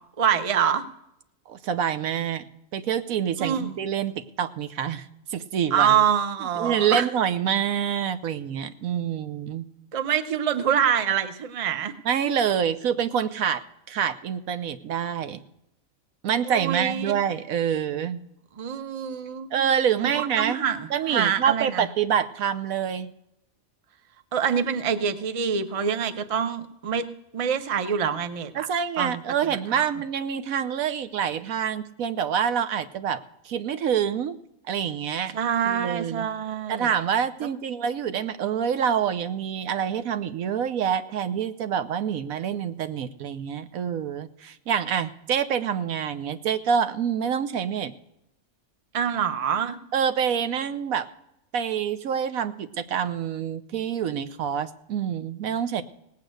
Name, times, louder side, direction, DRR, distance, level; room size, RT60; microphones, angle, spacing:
voice 1, 0.2-0.8 3.4-3.7 5.7-7.1 9.9-11.9 16.5-17.2 18.6-19.5 20.0-21.9 24.3-27.1 27.3-28.7 29.0-29.8 35.3-36.9 48.9-49.8, right 8 dB, 30° right, 9 dB, 0.6 m, -25 dB
voice 2, 1.5-5.1 5.3-6.0 6.6-9.6 12.0-15.4 16.2-18.2 19.5-20.6 20.9-23.1 28.5-34.4 34.7-35.3 35.6-36.3 36.7-47.9 49.9-51.1 51.5-55.8, right 8 dB, 80° right, 11 dB, 1.2 m, -26 dB
18.0 x 8.6 x 6.4 m, 0.81 s
omnidirectional pair, 1.5 m